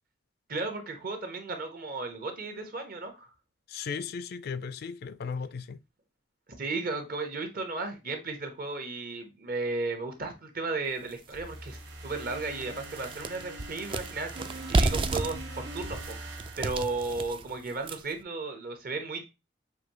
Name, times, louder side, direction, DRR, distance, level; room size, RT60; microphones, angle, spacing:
voice 1, 0.5-3.3 6.6-16.2 16.6-19.2, right 3 dB, 55° right, 1.2 m, -35 dB
voice 2, 3.7-5.8, left 5 dB, 60° left, 0.4 m, -36 dB
sound 1, 11.1-11.2 11.7-11.8 12.2-18.2, right 2 dB, 30° right, 0.4 m, -32 dB
sound 2, 11.3-17.5, right 1 dB, 80° right, 1.5 m, -42 dB
6.1 x 2.7 x 2.9 m
head